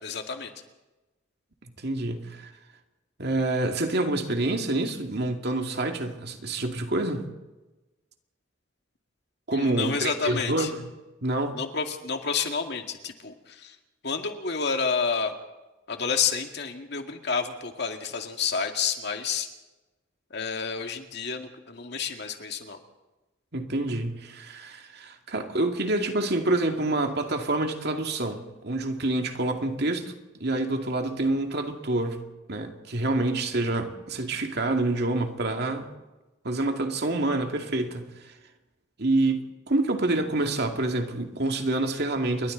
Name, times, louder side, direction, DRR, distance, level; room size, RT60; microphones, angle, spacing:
voice 1, 0.0-0.5 9.5-10.7 11.5-13.8 14.0-15.4 15.9-19.5 20.3-22.8, left 5 dB, 60° left, 2.2 m, -29 dB
voice 2, 1.6-2.5 3.2-7.3 9.5-10.9 11.2-11.6 23.5-30.1 30.4-32.2 32.5-35.9 36.4-38.3 39.0-42.5, right 2 dB, 60° right, 2.4 m, -27 dB
28.5 x 23.0 x 4.0 m
head